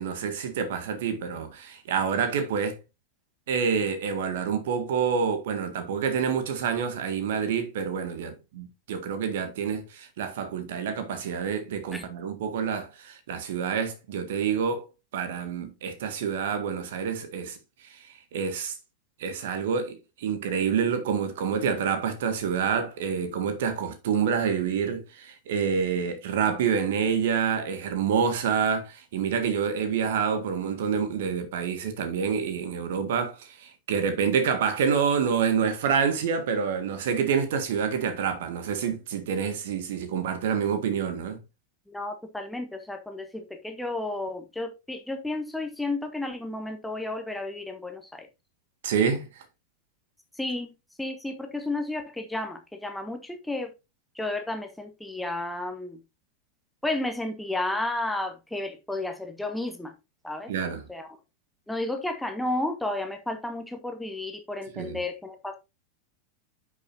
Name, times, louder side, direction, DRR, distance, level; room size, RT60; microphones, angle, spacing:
voice 1, 0.0-2.8 3.5-17.6 17.9-18.1 18.3-18.7 19.2-41.4 48.8-49.4 60.5-60.8 64.7-65.0, right 6 dB, 55° right, 1.7 m, -27 dB
voice 2, 41.9-48.3 50.3-50.7 51.0-53.7 54.1-56.0 56.8-59.9 60.2-60.5 60.9-61.2 61.7-65.6, left 2 dB, 5° left, 1.4 m, -32 dB
10.5 x 6.2 x 2.7 m
figure-of-eight pair, 90°, 0 cm